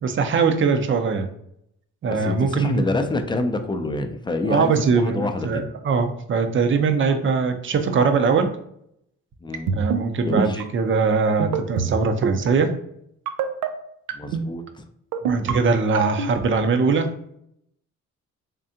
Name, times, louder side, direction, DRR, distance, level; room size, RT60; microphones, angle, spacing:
voice 1, 0.0-1.3 2.0-2.9 4.4-8.5 9.7-12.7 15.2-17.1, right 5 dB, 40° right, 7 dB, 0.6 m, -21 dB
voice 2, 2.1-5.6 9.4-9.9 10.3-10.6 14.1-14.8, left 2 dB, 15° left, 7 dB, 0.5 m, -27 dB
sound 1, 9.5-10.0 10.4-10.6 11.4-11.9 12.2-12.5 13.3-13.7 14.1-14.5 15.1-15.5 15.9-16.3, right 7 dB, 90° right, 0.5 m, -24 dB
3.7 x 3.3 x 2.7 m, 0.74 s
cardioid pair, 90°, 30 cm